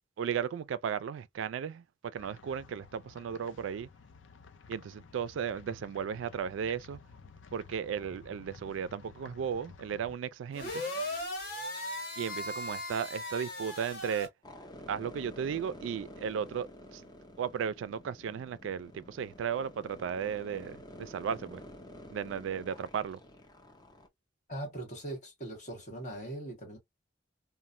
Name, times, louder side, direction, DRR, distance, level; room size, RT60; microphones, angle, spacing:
voice 1, 0.2-1.8 2.1-3.9 4.7-7.0 7.5-10.8 12.2-14.3 14.9-17.0 17.4-21.6 22.1-23.2, right 7 dB, 85° right, 0.3 m, -35 dB
sound 1, 2.2-10.2, left 5 dB, 80° left, 0.5 m, -53 dB
sound 2, 10.5-14.3, left 1 dB, 55° left, 1.3 m, -38 dB
sound 3, 14.4-24.1, left 1 dB, 20° left, 0.5 m, -50 dB
voice 2, 24.5-26.8, right 1 dB, 40° left, 1.5 m, -40 dB
3.0 x 2.1 x 2.5 m
head